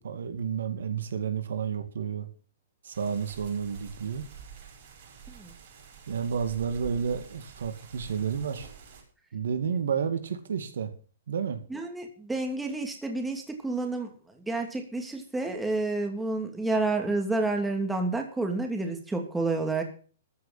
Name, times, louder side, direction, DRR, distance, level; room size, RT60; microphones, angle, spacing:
voice 1, 0.0-2.3 2.8-4.2 6.1-8.7 9.3-10.9 11.3-11.6, right 7 dB, 75° right, 2.2 m, -31 dB
early spring storm, 2.9-9.0, right 7 dB, 50° right, 6.4 m, -47 dB
voice 2, 11.7-14.1 14.4-19.8, right 2 dB, 5° right, 2.8 m, -29 dB
14.0 x 6.6 x 7.5 m
hypercardioid pair, 130°, 0 cm